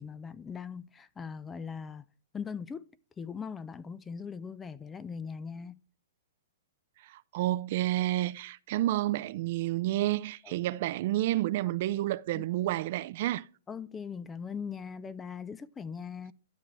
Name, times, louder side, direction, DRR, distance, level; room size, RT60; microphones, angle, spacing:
voice 1, 0.0-2.1 2.3-2.9 3.2-5.8 10.4-10.8 11.7-12.0 12.3-12.4 13.7-16.3, left 6 dB, 10° left, 0.4 m, -40 dB
voice 2, 7.1-13.4, right 15 dB, 45° right, 0.4 m, -30 dB
12.5 x 7.5 x 3.0 m
hypercardioid pair, 160°, 0 cm